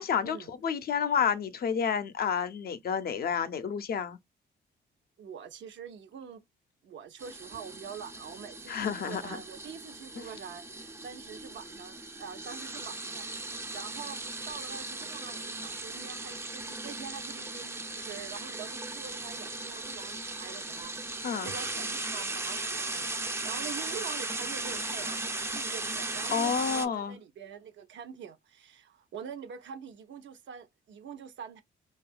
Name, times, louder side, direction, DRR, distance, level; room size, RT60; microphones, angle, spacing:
voice 1, 0.0-0.4 0.6-4.2 8.7-9.4 10.2-10.3 21.2-21.5 26.3-27.2, left 7 dB, 50° left, 0.5 m, -30 dB
voice 2, 5.2-6.4 6.8-31.6, right 7 dB, 70° right, 0.6 m, -45 dB
sound 1, 7.2-26.9, right 2 dB, 15° right, 0.4 m, -37 dB
2.6 x 2.3 x 2.2 m
cardioid pair, 90°, 20 cm